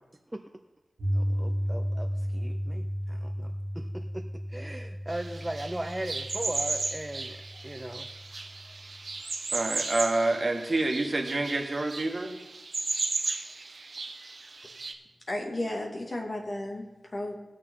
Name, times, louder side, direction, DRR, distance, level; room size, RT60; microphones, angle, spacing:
Piano, 1.0-9.1, equal, 90° right, 2.2 m, -34 dB
voice 1, 1.1-4.2 4.5-7.4 7.6-8.1, right 1 dB, 20° right, 5 dB, 0.7 m, -38 dB
sound 1, 5.1-14.9, right 3 dB, 70° right, 1.1 m, -35 dB
voice 2, 9.5-12.3, right 2 dB, 45° right, 2 dB, 1.8 m, -27 dB
voice 3, 15.3-17.4, left 1 dB, 50° left, 0 dB, 2.3 m, -34 dB
19.0 x 6.6 x 3.8 m, 1.1 s
wide cardioid pair, 60°, 0 cm